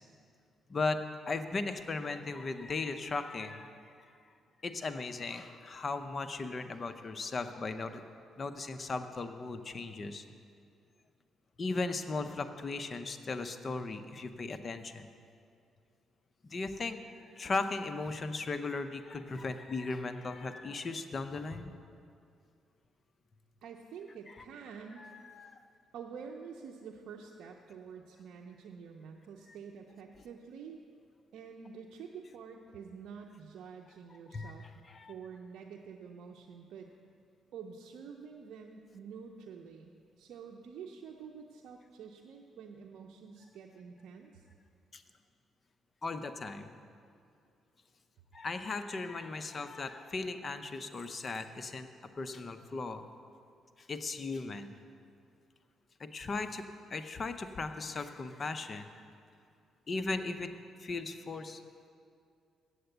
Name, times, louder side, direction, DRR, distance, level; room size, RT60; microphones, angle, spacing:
voice 1, 1.3-3.8 4.6-8.0 8.4-10.2 11.6-15.1 16.4-17.0 17.4-21.7 25.0-25.6 34.3-35.1 44.9-45.0 46.0-46.7 48.3-51.9 52.2-53.0 53.8-54.7 56.0-56.6 56.9-58.9 59.9-60.5 60.8-61.6, left 3 dB, 35° left, 8 dB, 0.7 m, -37 dB
voice 2, 23.6-25.1 25.9-30.8 31.3-34.6 35.1-36.9 37.5-44.4, right 6 dB, 75° right, 0 dB, 0.6 m, -48 dB
8.0 x 7.9 x 7.9 m, 2.4 s
cardioid pair, 90°, 0 cm